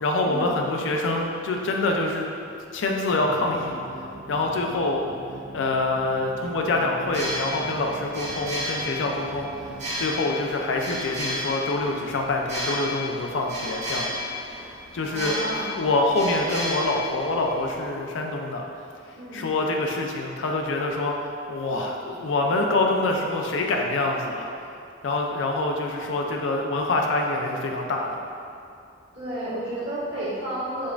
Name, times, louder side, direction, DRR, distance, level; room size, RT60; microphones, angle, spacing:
voice 1, 0.0-2.3 2.7-3.8 4.3-5.1 5.5-9.7 10.0-14.2 14.9-15.5 15.7-18.7 19.3-21.2 21.5-24.5 25.0-28.2, left 2 dB, 70° left, 1 dB, 0.4 m, -25 dB
sound 1, 3.1-10.1, right 2 dB, 85° right, 0.6 m, -42 dB
sound 2, 7.0-17.8, left 1 dB, 35° right, 0.8 m, -33 dB
voice 2, 15.1-15.7 19.2-19.4 29.1-30.9, right 1 dB, 65° right, -12 dB, 1.4 m, -31 dB
5.0 x 2.4 x 2.3 m, 2.6 s
head